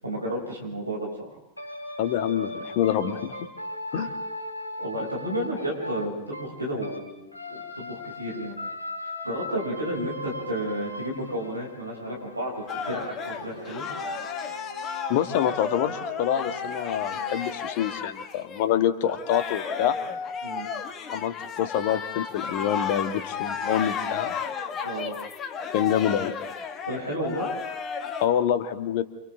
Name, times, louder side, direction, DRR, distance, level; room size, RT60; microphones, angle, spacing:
voice 1, 0.0-1.4 4.8-8.5 9.2-13.8 20.4-20.7 24.8-25.2 26.9-27.5, equal, 85° right, -2 dB, 7.4 m, -32 dB
sound 1, 1.6-7.0 7.3-17.6, left 1 dB, 85° left, 3.4 m, -39 dB
voice 2, 2.0-3.4 3.9-4.1 15.1-19.9 21.1-24.4 25.7-26.3 28.2-29.0, left 10 dB, 50° left, 9 dB, 1.9 m, -26 dB
sound 2, 12.7-18.7 19.0-28.3, left 6 dB, 25° left, 1.9 m, -33 dB
29.0 x 28.5 x 3.9 m, 0.93 s
figure-of-eight pair, 90°, 0 cm